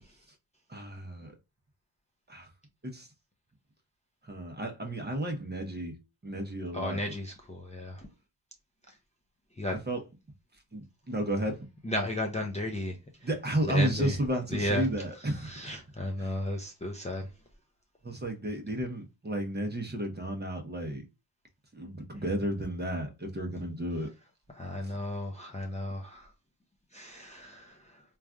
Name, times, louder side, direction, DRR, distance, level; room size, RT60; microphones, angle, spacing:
voice 1, 0.7-1.3 2.3-2.5 2.8-3.1 4.2-6.0 6.2-7.0 9.7-10.0 10.7-11.6 13.2-15.5 16.2-16.3 18.0-21.0 21.7-24.1, right 1 dB, 20° right, 0.8 m, -32 dB
voice 2, 6.7-8.1 8.9-9.0 9.6-9.8 11.8-13.3 13.6-14.2 14.5-14.9 15.2-17.3 24.5-26.3 26.9-28.0, left 1 dB, 15° left, 0.6 m, -34 dB
3.2 x 2.4 x 2.3 m
cardioid pair, 60°, 50 cm